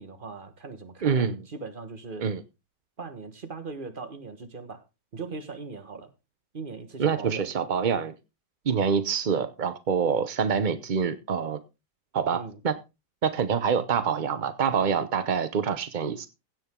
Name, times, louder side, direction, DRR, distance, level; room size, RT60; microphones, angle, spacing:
voice 1, 0.0-2.3 3.0-4.8 5.1-6.1 6.5-7.5 12.3-12.6, right 4 dB, 30° right, 1.5 m, -39 dB
voice 2, 1.0-1.4 2.2-2.4 7.0-8.1 8.6-11.6 12.1-12.8 13.2-16.3, right 6 dB, 55° right, 0.5 m, -26 dB
16.0 x 7.7 x 3.7 m
omnidirectional pair, 1.9 m